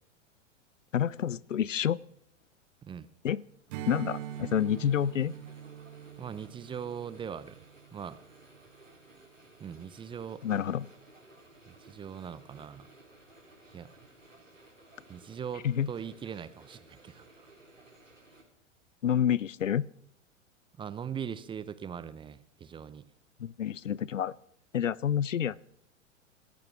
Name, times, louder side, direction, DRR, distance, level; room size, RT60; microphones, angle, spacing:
voice 1, 0.9-2.0 3.2-3.4 3.9-5.3 10.4-10.9 15.6-15.9 19.0-19.9 23.4-24.4 24.7-25.6, left 9 dB, 80° left, 0.5 m, -28 dB
Strum, 3.7-8.5, right 11 dB, 45° right, 1.4 m, -43 dB
sound 1, 3.8-18.4, right 2 dB, 90° right, 3.5 m, -57 dB
voice 2, 6.2-7.6 7.9-8.2 9.6-10.4 11.7-12.9 13.7-13.9 15.1-17.5 20.8-23.1, right 8 dB, 15° right, 0.6 m, -40 dB
26.5 x 14.5 x 3.5 m
figure-of-eight pair, 95°, 37 cm